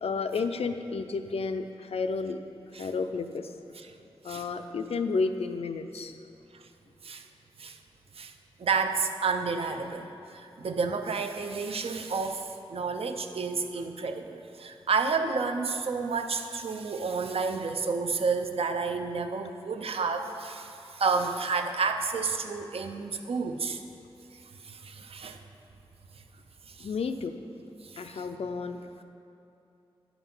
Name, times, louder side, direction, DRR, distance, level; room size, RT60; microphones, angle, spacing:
voice 1, 0.0-2.4 2.8-3.5 4.2-6.2 26.8-27.3 28.0-29.0, left 4 dB, 80° left, 7 dB, 0.5 m, -31 dB
voice 2, 8.6-23.8 24.6-25.4 26.7-26.9 27.8-28.2, right 4 dB, 75° right, 6 dB, 0.6 m, -30 dB
10.5 x 6.0 x 5.4 m, 2.9 s
wide cardioid pair, 110°, 10 cm